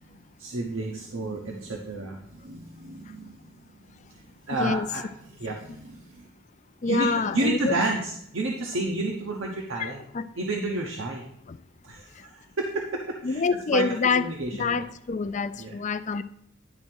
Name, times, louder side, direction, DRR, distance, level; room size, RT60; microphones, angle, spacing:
voice 1, 0.4-3.5 4.1-6.3 6.9-10.0 10.4-11.2 11.8-13.4 13.7-13.9 14.1-14.8 15.6-15.8, right 2 dB, 70° right, 1 dB, 1.0 m, -31 dB
voice 2, 6.8-7.8 9.8-10.3 13.2-14.2 14.6-16.2, left 4 dB, 35° left, 13 dB, 0.4 m, -26 dB
10.5 x 3.9 x 6.2 m, 0.71 s
head